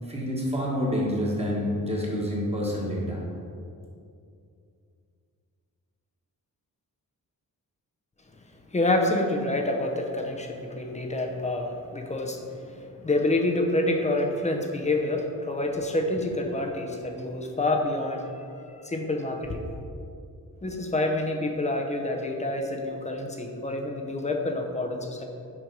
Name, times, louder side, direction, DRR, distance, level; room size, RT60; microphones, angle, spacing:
voice 1, 0.1-3.2, equal, 15° right, -4 dB, 1.4 m, -28 dB
voice 2, 8.7-19.6 20.6-25.2, left 2 dB, 20° left, 2 dB, 0.7 m, -28 dB
6.5 x 5.2 x 4.7 m, 2.4 s
wide cardioid pair, 155°, 36 cm